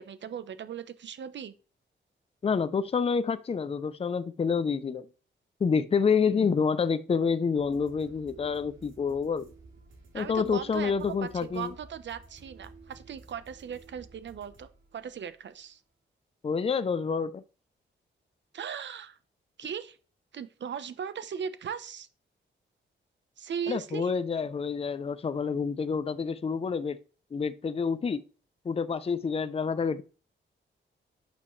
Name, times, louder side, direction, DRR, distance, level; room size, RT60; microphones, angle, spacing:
voice 1, 0.0-1.5 10.1-15.8 18.5-19.2 19.6-20.0 20.3-22.1 23.4-24.1, right 8 dB, 65° right, 0.9 m, -38 dB
voice 2, 2.4-5.1 5.6-9.5 10.1-11.7 16.4-17.4 23.7-27.0 27.3-28.2 28.6-30.0, left 5 dB, 30° left, 0.6 m, -28 dB
sound 1, 7.5-15.6, right 3 dB, 90° right, 3.1 m, -54 dB
11.0 x 7.1 x 3.2 m
wide cardioid pair, 125°, 20 cm